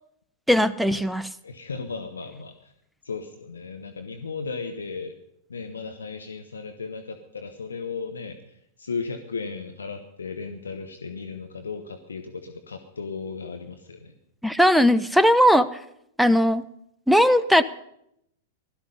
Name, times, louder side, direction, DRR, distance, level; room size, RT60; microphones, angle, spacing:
voice 1, 0.5-1.3 14.4-15.7 16.2-16.6 17.1-17.6, equal, ahead, 13 dB, 0.6 m, -18 dB
voice 2, 1.4-2.7 3.0-5.1 5.5-8.4 8.8-14.2, left 4 dB, 80° left, 7 dB, 1.1 m, -35 dB
16.0 x 12.5 x 5.4 m, 0.76 s
figure-of-eight pair, 95°, 0 cm